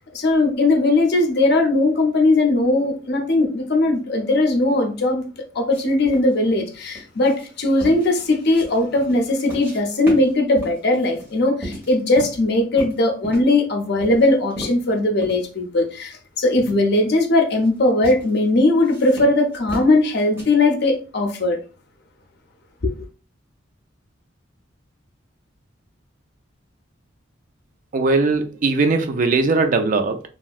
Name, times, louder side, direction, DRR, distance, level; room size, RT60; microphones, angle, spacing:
voice 1, 0.1-5.2 5.6-21.6 22.8-22.9, left 2 dB, 55° left, 0.6 m, -19 dB
sound 1, 5.7-9.8 10.1-12.4 12.8-13.6 14.0-15.5 15.8-15.9 16.6-16.8 17.4-17.7 18.0-18.3 18.8-20.4, equal, 10° right, 1.2 m, -35 dB
voice 2, 27.9-30.2, right 3 dB, 40° right, 0.3 m, -19 dB
2.9 x 2.7 x 2.3 m
head